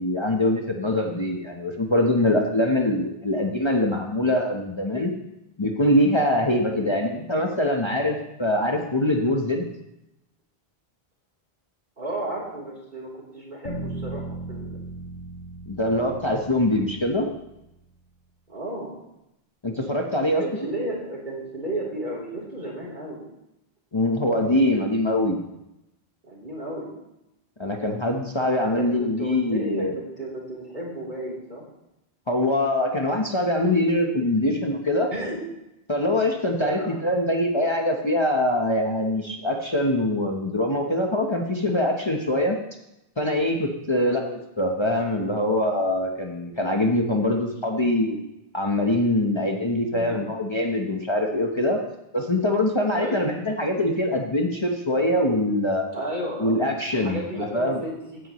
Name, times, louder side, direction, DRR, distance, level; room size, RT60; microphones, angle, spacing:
voice 1, 0.0-5.1 5.6-9.6 15.7-17.3 19.6-20.7 23.9-25.4 27.6-29.9 32.3-35.1 35.9-42.6 43.2-48.2 48.5-51.8 52.1-55.8 56.4-57.8, left 1 dB, 30° left, 1 dB, 1.0 m, -23 dB
voice 2, 12.0-14.2 14.5-14.8 18.5-18.9 20.4-23.2 26.2-26.9 28.6-31.6 35.1-35.4 36.6-37.0 43.9-44.2 49.9-50.2 52.9-53.2 55.9-58.2, right 1 dB, 50° right, -4 dB, 3.5 m, -33 dB
sound 1, 13.6-17.7, right 2 dB, 85° left, 2.3 m, -37 dB
16.0 x 9.9 x 3.1 m, 0.88 s
omnidirectional pair, 1.0 m